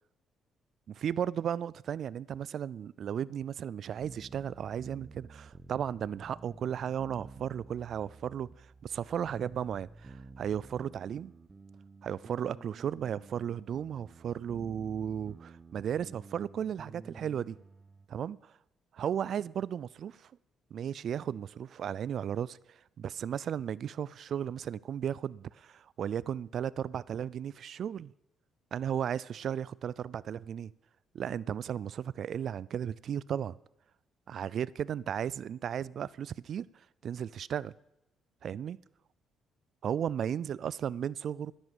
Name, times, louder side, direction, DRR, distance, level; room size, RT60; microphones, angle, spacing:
voice 1, 0.9-11.3 12.0-17.6 18.1-18.5 18.9-20.3 20.7-28.1 28.7-30.7 31.1-33.6 34.3-36.7 37.0-37.7 38.4-38.8 39.8-41.5, right 9 dB, 60° right, 0.3 m, -35 dB
sound 1, 4.0-18.1, right 3 dB, 30° right, 1.1 m, -52 dB
10.5 x 8.8 x 7.6 m
supercardioid pair, 60°, 0 cm